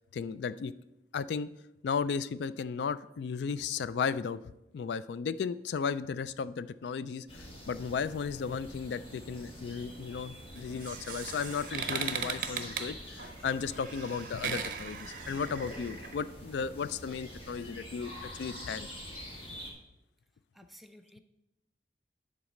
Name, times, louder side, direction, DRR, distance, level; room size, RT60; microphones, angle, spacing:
voice 1, 0.1-0.7 1.1-1.5 1.8-4.4 4.7-18.9, left 6 dB, 75° left, 16 dB, 0.3 m, -35 dB
sound 1, 7.3-19.7, equal, 30° left, 1.6 m, -46 dB
sound 2, 10.6-16.1, right 7 dB, 50° right, 0.8 m, -38 dB
voice 2, 20.5-21.2, equal, ahead, 6 dB, 0.5 m, -54 dB
10.0 x 4.0 x 6.3 m, 0.92 s
head